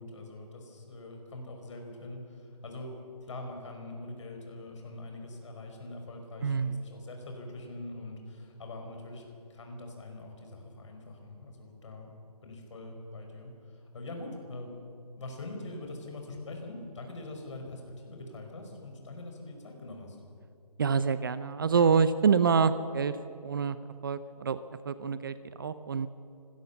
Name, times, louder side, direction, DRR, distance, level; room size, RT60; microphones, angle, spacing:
voice 1, 0.0-2.9 3.2-9.2 9.5-12.1 12.4-14.7 15.2-20.2, left 2 dB, 50° left, 3 dB, 5.6 m, -43 dB
voice 2, 6.4-6.8 20.8-26.1, right 6 dB, 35° right, 13 dB, 0.7 m, -27 dB
25.0 x 18.0 x 7.2 m, 2.4 s
hypercardioid pair, 160°, 20 cm